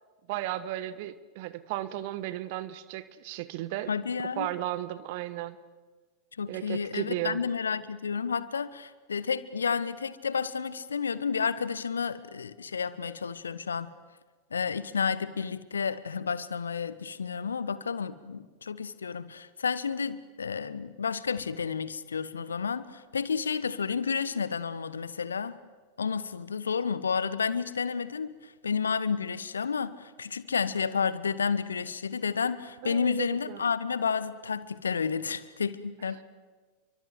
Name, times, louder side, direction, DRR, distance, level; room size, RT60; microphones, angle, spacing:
voice 1, 0.3-3.9 4.4-5.6 6.5-7.4 32.8-33.7, right 14 dB, 50° right, 15 dB, 1.4 m, -35 dB
voice 2, 3.9-4.5 6.4-13.9 14.5-25.6 26.0-36.2, left 6 dB, 70° left, 17 dB, 1.1 m, -31 dB
29.5 x 24.0 x 8.0 m, 1.4 s
figure-of-eight pair, 90°, 0 cm